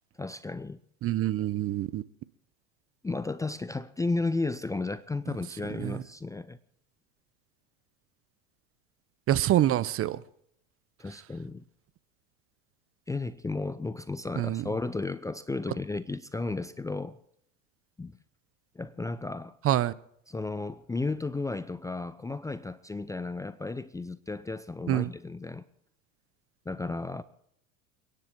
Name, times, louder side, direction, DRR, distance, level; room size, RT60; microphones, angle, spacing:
voice 1, 0.2-0.8 3.0-6.6 11.0-11.6 13.1-17.2 18.0-18.2 18.7-19.5 20.3-25.6 26.7-27.2, left 3 dB, 10° left, 0.6 m, -33 dB
voice 2, 1.0-2.0 5.8-6.0 9.3-10.2 14.4-14.6 19.6-19.9 24.9-25.1, right 13 dB, 35° right, 0.8 m, -26 dB
30.0 x 10.0 x 4.6 m
hypercardioid pair, 90°, 40 cm